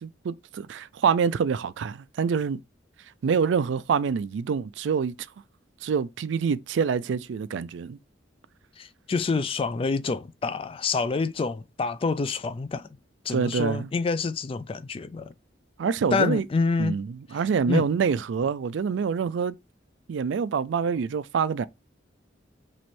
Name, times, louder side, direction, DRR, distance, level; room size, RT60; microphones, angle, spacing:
voice 1, 0.0-2.6 3.2-5.2 5.8-8.0 13.3-13.9 15.8-16.5 16.8-19.6 20.1-21.6, right 6 dB, 75° right, 0.3 m, -26 dB
voice 2, 8.8-12.9 13.3-15.3 16.1-17.0 17.7-17.9, left 4 dB, 30° left, 0.3 m, -27 dB
3.1 x 3.0 x 4.3 m
head